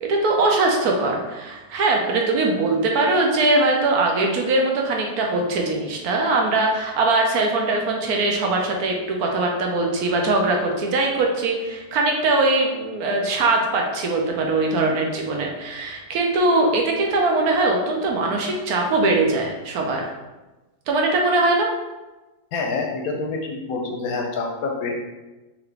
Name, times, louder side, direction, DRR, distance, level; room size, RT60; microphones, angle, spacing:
voice 1, 0.0-20.1 20.9-21.7, right 2 dB, 70° right, 1 dB, 1.1 m, -21 dB
voice 2, 22.5-24.9, left 3 dB, 70° left, 1 dB, 1.0 m, -27 dB
3.8 x 2.9 x 3.3 m, 1.1 s
omnidirectional pair, 1.7 m